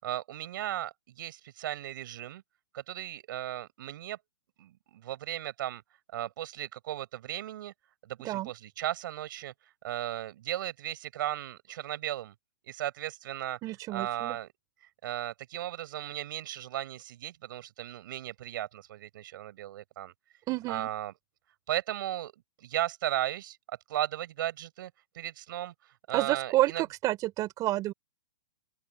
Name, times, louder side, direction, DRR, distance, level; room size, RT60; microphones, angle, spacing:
voice 1, 0.0-2.4 2.7-4.2 4.6-5.8 6.1-7.7 8.0-9.5 9.8-12.3 12.6-13.6 13.9-14.5 15.0-20.1 20.7-21.1 21.7-22.3 22.6-26.8, right 13 dB, 60° right, 7.7 m, -36 dB
voice 2, 13.6-14.4 20.5-20.9 26.1-27.9, right 16 dB, 30° right, 3.7 m, -29 dB
open air
hypercardioid pair, 130°, 13 cm